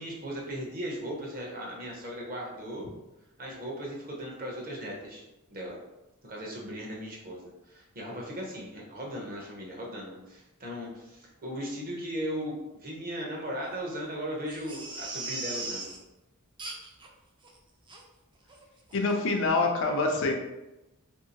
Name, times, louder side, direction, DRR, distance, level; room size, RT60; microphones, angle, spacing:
voice 1, 0.0-2.9 3.4-5.2 5.5-5.8 6.2-15.9, equal, 40° right, -2 dB, 0.7 m, -37 dB
Crying sobbing, 14.5-16.0 16.6-17.1 17.4-17.5 17.9-18.0 18.5-18.6 18.9-19.0, right 2 dB, 20° right, 0.4 m, -38 dB
voice 2, 18.9-20.3, left 3 dB, 60° left, 2 dB, 0.5 m, -25 dB
2.8 x 2.7 x 2.8 m, 0.98 s
head